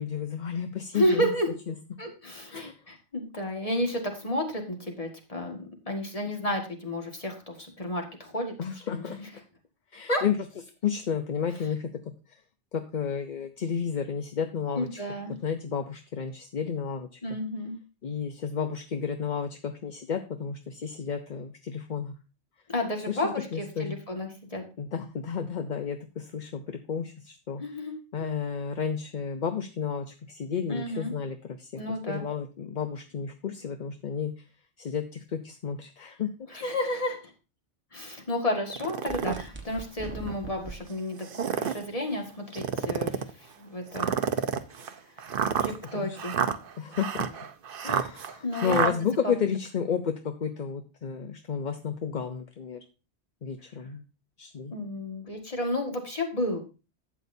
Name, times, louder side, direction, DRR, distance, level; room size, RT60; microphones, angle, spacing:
voice 1, 0.0-1.3 1.7-1.8 2.5-2.8 8.6-9.2 9.9-10.4 10.8-11.9 12.3-12.4 12.7-14.9 15.4-17.2 18.0-22.1 23.1-24.0 24.8-27.6 28.1-31.8 32.1-34.4 34.8-36.3 45.9-46.2 46.8-47.3 47.8-52.8 53.4-54.0 54.4-54.7, left 7 dB, 45° left, 7 dB, 0.8 m, -32 dB
voice 2, 0.9-1.5 2.0-8.5 8.9-9.3 10.1-10.2 14.8-15.3 17.2-17.8 22.7-24.6 27.6-27.9 30.7-31.1 31.8-32.2 36.5-37.3 37.9-44.1 45.2-45.3 45.6-46.3 48.4-49.3 54.7-56.6, left 1 dB, 30° left, 2 dB, 1.9 m, -31 dB
sound 1, 38.7-39.4 40.0-40.1 41.2-41.9 42.5-43.3 43.9-48.9, right 7 dB, 55° right, 0.9 m, -29 dB
sound 2, 39.1-40.8, right 3 dB, 10° right, 1.1 m, -40 dB
12.0 x 8.3 x 2.7 m, 0.32 s
omnidirectional pair, 1.2 m